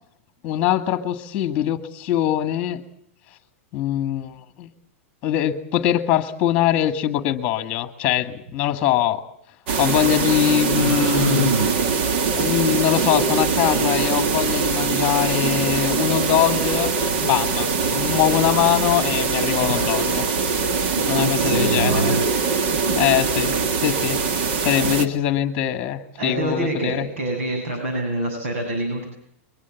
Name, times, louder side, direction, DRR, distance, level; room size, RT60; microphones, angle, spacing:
voice 1, 0.4-2.8 3.7-4.7 5.2-9.3 9.8-11.5 12.3-16.9 17.2-20.2 21.1-22.1 22.9-27.1, left 12 dB, 20° left, 9 dB, 1.8 m, -22 dB
sound 1, 9.7-25.1, right 5 dB, 50° right, 1.9 m, -22 dB
voice 2, 10.7-11.7 19.6-20.0 20.8-22.2 22.8-22.9 24.7-25.1 26.2-29.1, right 2 dB, 75° right, 4 dB, 7.2 m, -26 dB
23.5 x 21.5 x 7.1 m, 0.70 s
supercardioid pair, 170°, 7 cm